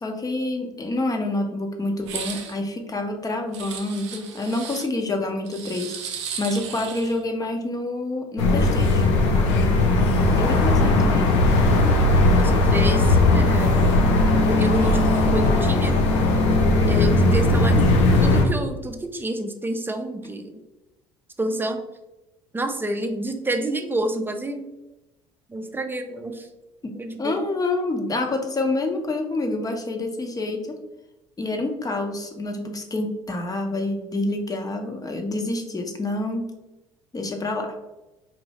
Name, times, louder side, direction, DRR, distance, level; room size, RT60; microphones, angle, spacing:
voice 1, 0.0-9.1 9.3-9.8 10.3-11.3 26.8-26.9 27.2-30.8 31.4-36.4 37.1-37.7, left 2 dB, 25° left, 4 dB, 0.8 m, -27 dB
sound 1, 2.0-2.6 3.5-4.9 5.5-7.2, right 7 dB, 80° right, 0.5 m, -35 dB
sound 2, 8.4-18.5, left 2 dB, 80° left, 0.6 m, -18 dB
voice 2, 12.4-13.7 14.5-16.0 16.8-20.6 21.4-21.8 22.5-24.6 25.5-26.5 26.9-27.4, right 1 dB, 15° right, 6 dB, 0.6 m, -29 dB
4.2 x 2.6 x 3.0 m, 0.98 s
hypercardioid pair, 65°, 15 cm